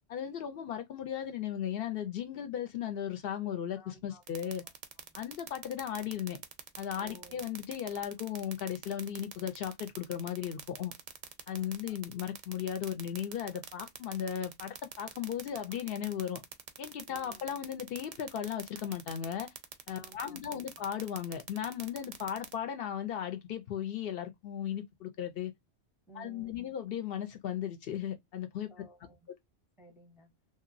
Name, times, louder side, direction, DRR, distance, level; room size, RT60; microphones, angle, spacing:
voice 1, 0.1-4.6 5.1-6.4 6.8-10.9 11.5-16.4 16.8-19.5 19.9-25.5 26.1-28.9, left 9 dB, 65° left, 0.7 m, -36 dB
voice 2, 3.7-5.3 7.0-7.5 11.5-12.0 17.1-17.6 20.0-20.7 26.1-26.7 28.7-29.3 29.8-30.3, right 1 dB, 5° right, 0.4 m, -57 dB
sound 1, 4.3-22.5, right 8 dB, 55° right, 0.5 m, -43 dB
2.9 x 2.5 x 2.4 m
omnidirectional pair, 1.1 m